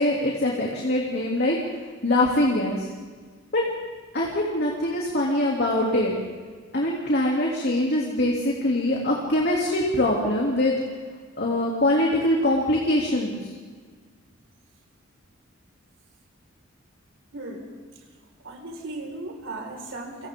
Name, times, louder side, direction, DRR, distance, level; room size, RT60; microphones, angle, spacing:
voice 1, 0.0-1.6 2.0-2.9 3.5-3.6 4.1-6.1 6.7-10.8 11.4-13.5, left 1 dB, 55° left, -2 dB, 3.1 m, -23 dB
voice 2, 17.3-17.7 18.4-20.3, right 2 dB, 70° right, 1 dB, 5.2 m, -36 dB
30.0 x 25.0 x 3.8 m, 1.5 s
head